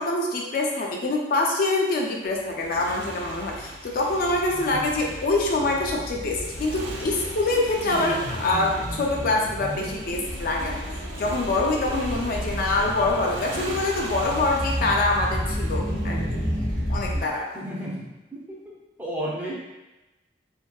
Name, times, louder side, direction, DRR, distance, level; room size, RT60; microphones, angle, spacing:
voice 1, 0.0-10.8 11.2-16.4 16.9-17.4, left 2 dB, 50° left, -1 dB, 0.3 m, -25 dB
Motorcycle, 2.2-17.4, right 2 dB, 70° right, 0.4 m, -40 dB
sound 1, 4.1-17.2, equal, 50° right, 0.9 m, -32 dB
voice 2, 4.5-4.8 12.3-12.6 17.0-17.2 17.5-18.0 18.3-18.6 19.0-19.5, right 1 dB, 10° right, -6 dB, 0.5 m, -33 dB
2.6 x 2.2 x 2.2 m, 1.1 s
head